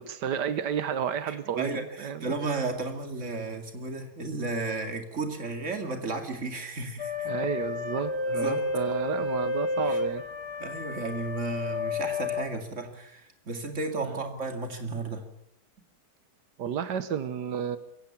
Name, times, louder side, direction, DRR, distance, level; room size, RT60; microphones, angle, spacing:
voice 1, 0.0-2.3 7.2-10.2 14.0-14.2 16.6-17.8, right 8 dB, 90° right, 12 dB, 1.6 m, -31 dB
voice 2, 1.2-7.3 8.3-8.7 9.8-10.0 10.6-15.2, right 3 dB, 45° right, 5 dB, 2.7 m, -33 dB
sound 1, 7.0-12.4, left 3 dB, 65° left, 2.9 m, -31 dB
22.0 x 16.5 x 7.3 m, 0.81 s
omnidirectional pair, 1.8 m